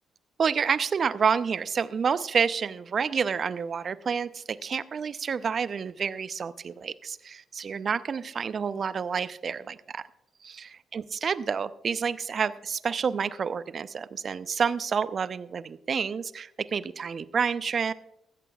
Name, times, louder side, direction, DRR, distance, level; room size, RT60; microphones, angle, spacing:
voice 1, 0.4-10.0 10.4-17.9, right 6 dB, 50° right, 17 dB, 0.6 m, -29 dB
18.5 x 15.5 x 2.4 m, 0.86 s
hypercardioid pair, 45°, 0 cm